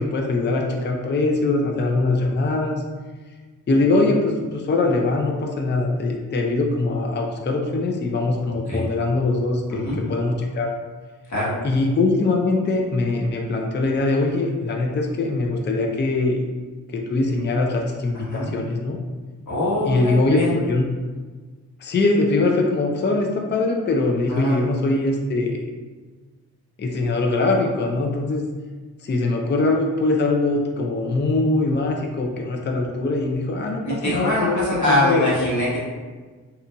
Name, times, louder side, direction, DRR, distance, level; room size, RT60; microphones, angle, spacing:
voice 1, 0.0-2.8 3.7-10.7 11.6-16.4 16.9-19.0 19.9-20.9 21.8-25.6 26.8-28.5 29.0-35.4, left 2 dB, 30° left, 1 dB, 0.5 m, -22 dB
voice 2, 11.3-11.6 18.1-18.5 19.5-20.6 24.3-24.6 33.8-35.9, left 1 dB, 55° left, -7 dB, 1.3 m, -23 dB
3.0 x 2.4 x 2.3 m, 1.4 s
supercardioid pair, 40°, 36 cm